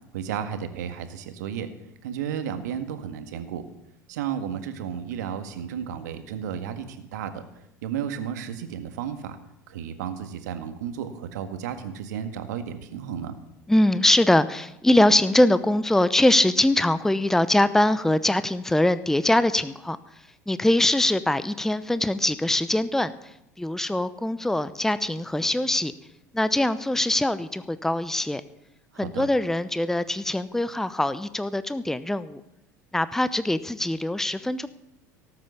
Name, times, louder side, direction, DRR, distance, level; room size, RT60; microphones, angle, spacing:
voice 1, 0.1-1.7 2.0-3.7 4.1-7.4 7.8-9.4 9.7-13.3 28.9-29.3, right 8 dB, 70° right, 8 dB, 1.7 m, -33 dB
voice 2, 13.7-20.0 20.5-25.9 26.3-28.4 29.0-32.4 32.9-34.7, left 1 dB, 5° left, 14 dB, 0.8 m, -22 dB
18.0 x 8.8 x 7.3 m, 0.82 s
hypercardioid pair, 75°, 10 cm